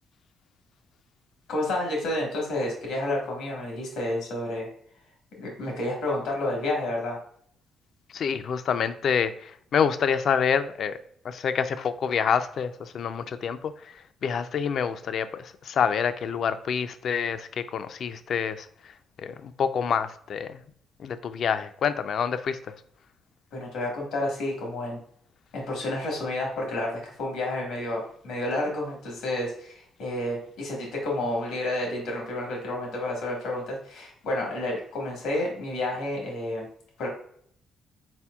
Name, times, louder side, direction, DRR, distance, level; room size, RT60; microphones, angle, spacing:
voice 1, 1.5-4.7 5.4-7.2 23.5-25.0 25.5-36.7 37.0-37.1, left 1 dB, 85° left, -1 dB, 1.3 m, -30 dB
voice 2, 8.1-11.0 11.2-18.9 19.2-20.6 21.0-22.7, left 7 dB, 60° left, 11 dB, 0.3 m, -27 dB
4.2 x 4.2 x 2.3 m, 0.63 s
cardioid pair, 90°, 0 cm